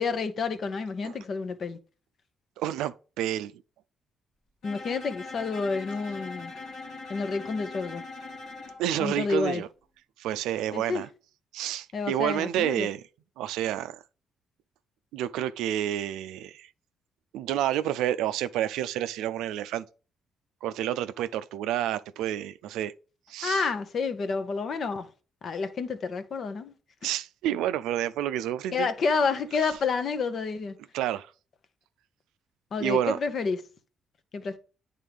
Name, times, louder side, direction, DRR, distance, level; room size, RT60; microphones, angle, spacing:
voice 1, 0.0-1.8 4.6-6.5 7.1-8.0 9.0-9.6 10.7-11.0 11.9-12.9 23.4-25.1 25.4-26.7 27.0-27.1 28.7-30.8 32.7-33.6 34.3-34.6, left 4 dB, 55° left, 1.0 m, -29 dB
voice 2, 2.6-3.5 8.8-9.7 10.2-11.1 11.5-13.0 13.4-14.0 15.1-16.7 17.3-19.8 20.6-22.9 23.3-23.6 27.0-28.9 30.9-31.3 32.8-33.2, right 12 dB, 80° right, 0.4 m, -29 dB
Bowed string instrument, 4.6-8.8, left 3 dB, 75° left, 1.9 m, -41 dB
9.1 x 3.7 x 3.5 m
supercardioid pair, 55°, 0 cm